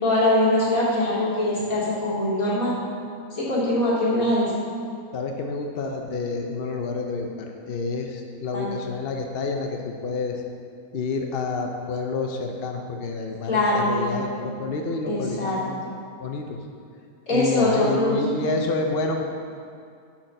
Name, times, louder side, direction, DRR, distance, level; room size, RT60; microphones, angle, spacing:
voice 1, 0.0-2.8 3.3-4.5 8.5-8.7 13.5-14.2 15.1-15.6 17.3-18.2, left 1 dB, 75° left, -8 dB, 2.9 m, -22 dB
voice 2, 5.1-10.4 10.9-15.8 16.2-16.6 17.3-19.2, left 3 dB, 50° left, 2 dB, 0.8 m, -29 dB
10.0 x 4.4 x 6.5 m, 2.3 s
omnidirectional pair, 1.5 m